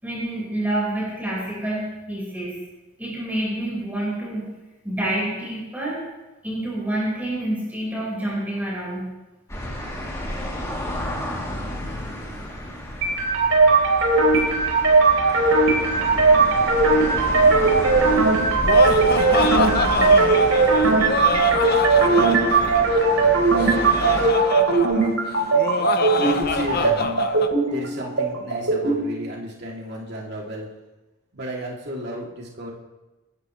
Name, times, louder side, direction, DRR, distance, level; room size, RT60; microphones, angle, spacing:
voice 1, 0.0-2.6 3.0-4.5 4.8-6.0 6.4-9.0, right 1 dB, 10° right, -6 dB, 5.1 m, -27 dB
sound 1, 9.5-24.3, equal, 15° left, 3.1 m, -31 dB
sound 2, 13.0-29.0, right 3 dB, 75° right, 4.4 m, -18 dB
Laughter, 18.4-27.5, left 4 dB, 45° left, 0.8 m, -26 dB
voice 2, 26.2-27.2 27.6-30.7 31.3-32.7, right 1 dB, 50° right, -2 dB, 3.0 m, -33 dB
28.0 x 14.0 x 3.3 m, 1.1 s
head